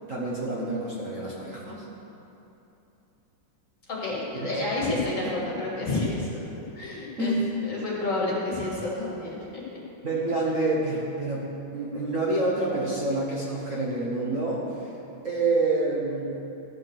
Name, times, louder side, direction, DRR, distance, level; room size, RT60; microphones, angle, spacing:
voice 1, 0.1-1.9 4.3-4.5 4.9-5.3 7.2-7.6 10.0-14.9 15.2-16.4, right 2 dB, 45° right, -5 dB, 1.5 m, -28 dB
voice 2, 3.9-6.4 6.7-7.3 7.6-9.6, left 2 dB, 40° left, -5 dB, 2.5 m, -29 dB
13.5 x 6.4 x 6.4 m, 2.9 s
omnidirectional pair, 2.2 m